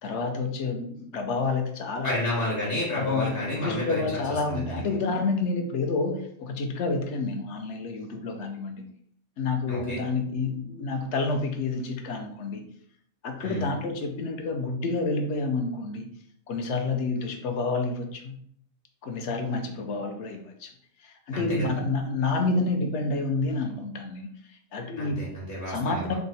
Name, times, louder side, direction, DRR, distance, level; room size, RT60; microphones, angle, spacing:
voice 1, 0.0-2.1 2.9-8.8 9.4-12.6 13.2-16.1 16.5-18.4 19.0-20.7 21.0-25.2 25.7-26.2, left 3 dB, 70° left, 4 dB, 0.9 m, -29 dB
voice 2, 2.0-4.8 9.7-10.0 13.4-13.6 21.3-21.8 25.0-26.2, left 1 dB, 50° left, -6 dB, 1.3 m, -31 dB
3.5 x 2.1 x 3.9 m, 0.66 s
omnidirectional pair, 1.3 m